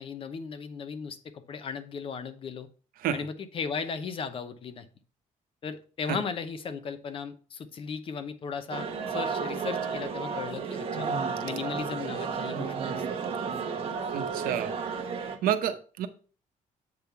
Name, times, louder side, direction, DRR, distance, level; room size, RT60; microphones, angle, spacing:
voice 1, 0.0-2.7 3.1-4.9 5.6-11.1 11.4-13.0, left 6 dB, 40° left, 9 dB, 0.7 m, -36 dB
sound 1, 8.7-15.4, right 5 dB, 40° right, 1.2 m, -32 dB
voice 2, 14.1-14.7 15.4-16.1, right 9 dB, 85° right, 10 dB, 0.8 m, -29 dB
7.7 x 3.6 x 5.6 m, 0.39 s
cardioid pair, 160°, 14 cm